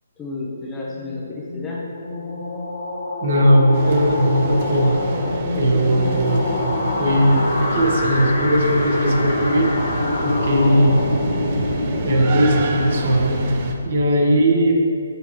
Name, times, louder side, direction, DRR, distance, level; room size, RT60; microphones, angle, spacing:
voice 1, 0.2-1.9 14.1-14.4, left 2 dB, 10° left, -5 dB, 0.7 m, -32 dB
sound 1, 1.0-13.6, left 2 dB, 75° left, 1.1 m, -26 dB
voice 2, 3.2-5.0 5.5-6.4 7.0-9.7 10.2-11.0 12.0-13.4 13.8-14.7, equal, 50° right, 0 dB, 1.1 m, -18 dB
sound 2, 3.7-13.7, right 3 dB, 35° right, 0.6 m, -29 dB
6.8 x 5.6 x 3.0 m, 2.4 s
hypercardioid pair, 165°, 0 cm